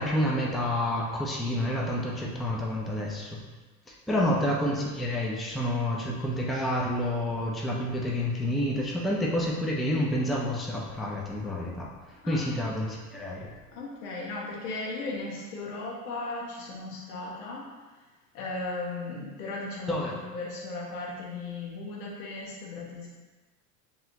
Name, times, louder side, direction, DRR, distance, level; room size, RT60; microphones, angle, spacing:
voice 1, 0.0-3.4 3.9-11.9 12.3-13.5 19.9-20.1, left 1 dB, ahead, -3 dB, 0.5 m, -29 dB
voice 2, 12.2-12.5 13.7-17.7 18.3-23.1, left 3 dB, 75° left, -3 dB, 1.3 m, -36 dB
5.4 x 2.9 x 2.8 m, 1.3 s
hypercardioid pair, 80°, 46 cm